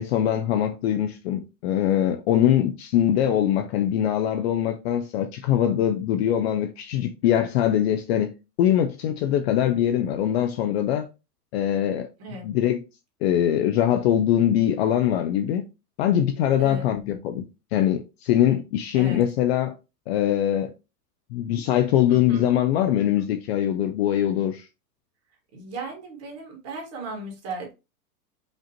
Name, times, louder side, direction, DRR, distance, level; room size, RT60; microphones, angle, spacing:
voice 1, 0.0-11.1 11.5-12.1 12.4-12.8 13.2-15.7 16.0-17.4 17.7-19.8 20.1-20.7 21.3-24.7, left 11 dB, 45° left, 0.4 m, -22 dB
voice 2, 16.6-16.9 18.9-19.2 22.1-22.5 25.5-27.7, right 3 dB, 30° right, 1.7 m, -36 dB
5.1 x 2.5 x 2.8 m
hypercardioid pair, 130°, 48 cm